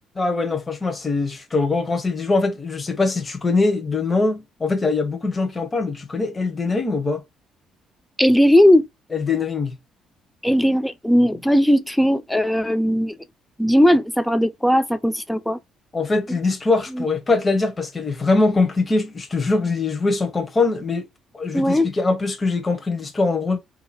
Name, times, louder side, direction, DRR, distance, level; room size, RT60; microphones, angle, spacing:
voice 1, 0.2-7.2 9.1-9.7 15.9-21.0 21.3-23.6, left 3 dB, 30° left, 1.2 m, -22 dB
voice 2, 8.2-8.8 10.4-13.2 13.6-15.6 16.9-17.0 21.5-21.9, equal, 5° left, 0.8 m, -17 dB
3.8 x 3.0 x 4.1 m
hypercardioid pair, 55°, 0 cm